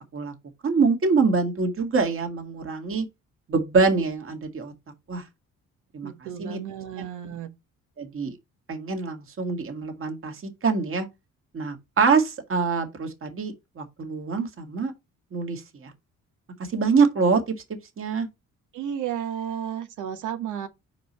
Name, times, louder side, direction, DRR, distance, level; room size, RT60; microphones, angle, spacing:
voice 1, 0.6-3.1 3.5-4.7 5.1-5.2 5.9-6.1 6.4-6.6 7.0-7.1 8.0-8.4 8.7-10.4 10.6-11.1 11.5-14.9 15.3-15.9 16.7-17.4 18.0-18.3, right 4 dB, 45° right, 2.0 m, -24 dB
voice 2, 6.0-7.5 18.7-20.7, right 9 dB, 85° right, 1.2 m, -32 dB
5.1 x 4.9 x 4.3 m
cardioid pair, 90°, 30 cm